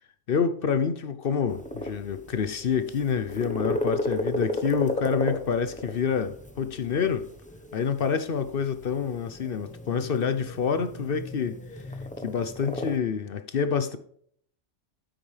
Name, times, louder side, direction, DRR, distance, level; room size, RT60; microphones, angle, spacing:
voice 1, 0.3-7.3 7.7-11.8 12.2-14.0, left 6 dB, 50° left, 0.8 m, -27 dB
sound 1, 1.5-13.0, left 1 dB, 5° left, 0.9 m, -35 dB
9.0 x 8.8 x 3.3 m
omnidirectional pair, 1.3 m